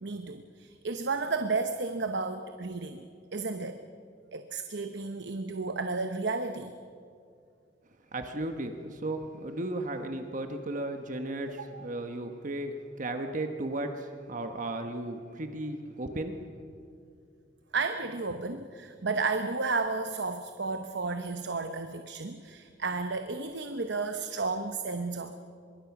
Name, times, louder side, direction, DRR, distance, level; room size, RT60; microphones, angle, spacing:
voice 1, 0.0-3.1 3.3-3.8 4.3-6.7 11.6-11.9 17.7-25.3, right 3 dB, 65° right, 7 dB, 1.0 m, -32 dB
voice 2, 8.1-16.3, right 1 dB, 45° right, 6 dB, 1.3 m, -35 dB
24.0 x 22.5 x 6.0 m, 2.4 s
head